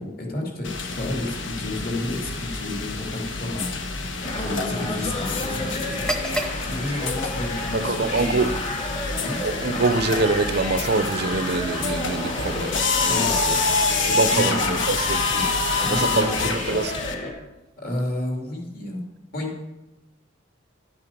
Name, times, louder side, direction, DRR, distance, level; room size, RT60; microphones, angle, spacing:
voice 1, 0.0-8.5 9.2-9.4 13.1-13.4 14.1-14.8 15.3-15.4 15.8-16.6 17.8-19.0 19.3-19.5, left 1 dB, 50° left, 2.8 m, -31 dB
sound 1, 0.6-17.1, left 4 dB, 75° left, 1.3 m, -27 dB
sound 2, 4.2-17.3, left 2 dB, 35° left, 1.9 m, -31 dB
sound 3, 5.9-13.7, right 1 dB, 5° left, 0.9 m, -38 dB
voice 2, 7.7-8.5 9.4-13.5 13.9-15.3 15.9-16.9, right 3 dB, 55° right, 0.6 m, -25 dB
12.0 x 8.5 x 5.3 m
head